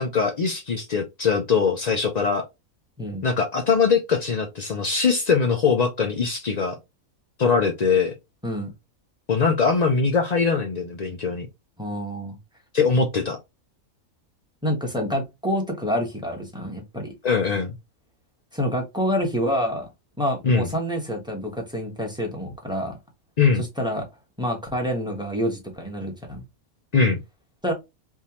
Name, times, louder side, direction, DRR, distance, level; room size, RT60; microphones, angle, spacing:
voice 1, 0.0-2.4 3.2-6.8 7.4-8.1 9.3-11.5 12.7-13.4 17.2-17.7 20.4-20.7 23.4-23.6 26.9-27.2, left 5 dB, 90° left, 0.3 m, -22 dB
voice 2, 11.8-12.4 14.6-17.1 18.5-19.9 20.2-23.0 23.6-24.0 24.4-26.4 27.6-27.7, equal, 5° right, 0.9 m, -27 dB
3.5 x 2.7 x 2.9 m
omnidirectional pair, 1.5 m